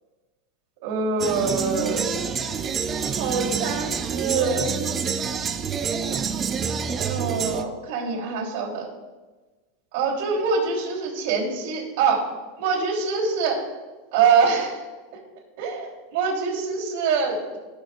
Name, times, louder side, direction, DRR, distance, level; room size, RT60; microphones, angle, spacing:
voice 1, 0.8-2.0 3.2-4.7 7.0-8.9 9.9-12.3 12.6-13.7 14.1-14.8 15.6-17.6, right 5 dB, 55° right, -4 dB, 3.2 m, -24 dB
sound 1, 1.2-7.6, right 6 dB, 20° right, 0.4 m, -27 dB
16.5 x 6.2 x 2.5 m, 1.3 s
supercardioid pair, 160°, 0 cm